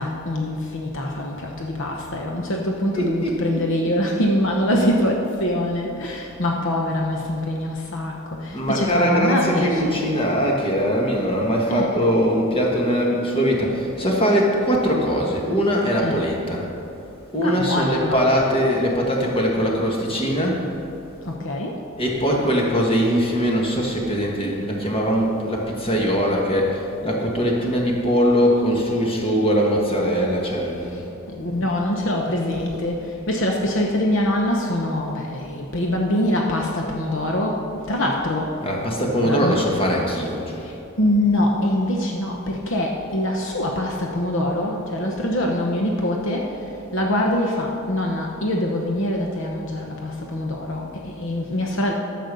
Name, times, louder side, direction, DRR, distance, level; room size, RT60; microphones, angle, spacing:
voice 1, 0.0-10.0 11.7-12.0 16.0-16.2 17.4-18.2 21.2-21.8 30.9-31.0 31.3-38.5 39.2-39.6 40.6-46.5 46.9-51.9, left 1 dB, 60° left, 0 dB, 0.9 m, -24 dB
voice 2, 2.9-3.6 8.5-16.6 17.3-20.6 22.0-31.0 38.6-40.6, equal, 25° left, -1 dB, 1.6 m, -21 dB
11.5 x 6.9 x 6.8 m, 2.7 s
head